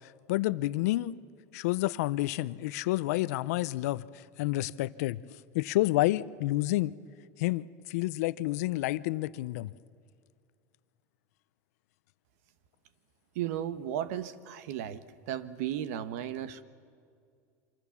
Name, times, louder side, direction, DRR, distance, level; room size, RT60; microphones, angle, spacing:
voice 1, 0.3-1.1 1.5-4.0 4.4-5.2 5.5-7.0 7.4-9.7, left 17 dB, 70° left, 18 dB, 0.6 m, -29 dB
voice 2, 13.3-16.6, right 10 dB, 70° right, 13 dB, 1.2 m, -35 dB
26.0 x 25.5 x 7.2 m, 2.3 s
supercardioid pair, 145°, 9 cm